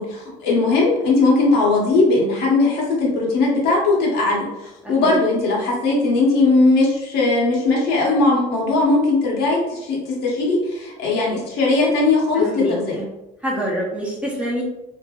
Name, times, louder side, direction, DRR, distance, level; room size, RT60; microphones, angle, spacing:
voice 1, 0.0-13.0, left 3 dB, 85° left, -3 dB, 0.9 m, -19 dB
voice 2, 4.8-5.1 12.3-13.1 13.4-14.6, equal, 5° right, -3 dB, 0.7 m, -26 dB
2.6 x 2.5 x 2.3 m, 0.91 s
cardioid pair, 110°, 17 cm